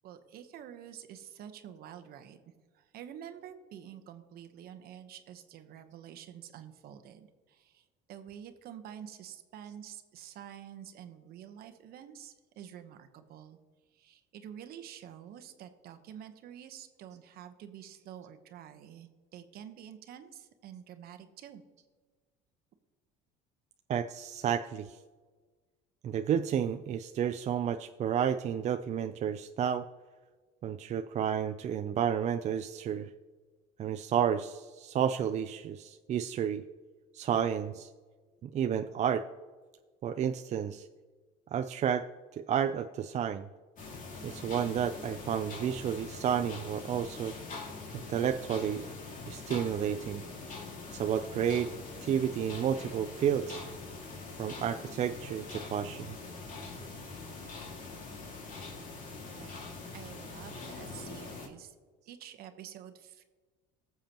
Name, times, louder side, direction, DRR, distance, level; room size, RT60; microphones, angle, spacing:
voice 1, 0.0-13.6 13.9-21.6 59.3-61.7 62.1-63.2, right 9 dB, 60° right, 9 dB, 1.1 m, -48 dB
voice 2, 23.9-25.0 26.0-29.9 30.6-33.1 33.8-36.6 37.1-37.9 38.4-39.2 40.0-40.9 41.5-42.1 42.3-43.5 44.2-47.3 48.1-48.8 49.3-50.2 50.9-51.7 52.0-53.6 54.4-56.1, right 8 dB, 40° right, 8 dB, 0.4 m, -31 dB
sound 1, 43.8-61.5, left 3 dB, 50° left, 2.2 m, -43 dB
18.5 x 7.1 x 3.0 m, 1.4 s
supercardioid pair, 105°, 18 cm